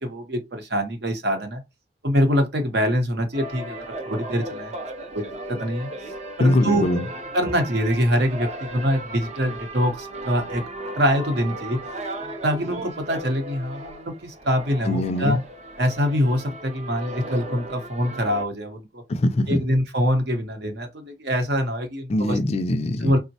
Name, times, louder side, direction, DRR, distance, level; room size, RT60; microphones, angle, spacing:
voice 1, 0.0-1.6 2.0-4.8 5.1-5.9 6.4-6.9 7.3-10.6 11.0-11.8 12.2-15.4 15.8-19.0 19.5-22.4 23.0-23.2, equal, 70° right, 0.8 m, -24 dB
sound 1, 3.3-18.4, right 1 dB, 40° right, 0.5 m, -36 dB
voice 2, 6.4-7.1 14.8-15.4 19.1-19.6 22.1-23.1, left 1 dB, 35° left, 0.4 m, -22 dB
3.5 x 2.1 x 2.7 m
head